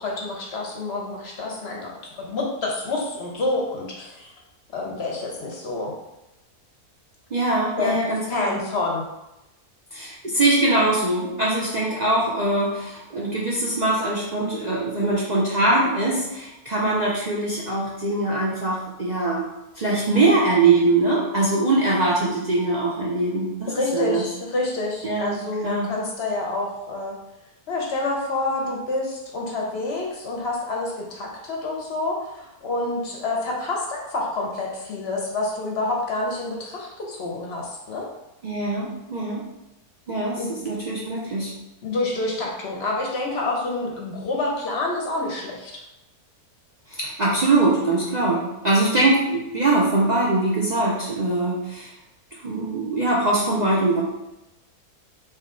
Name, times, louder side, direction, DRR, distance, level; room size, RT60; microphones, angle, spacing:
voice 1, 0.0-4.3 4.7-5.9 7.8-8.0 8.3-9.0 23.7-27.2 27.7-38.1 40.4-40.7 41.8-45.8, left 2 dB, 55° left, -1 dB, 0.8 m, -28 dB
voice 2, 7.3-8.6 9.9-19.5 19.8-24.2 25.0-25.3 25.6-25.9 38.4-39.4 40.1-41.5 46.9-51.9 52.3-54.0, right 2 dB, 65° right, -6 dB, 0.4 m, -22 dB
3.6 x 2.8 x 3.6 m, 0.95 s
omnidirectional pair, 1.6 m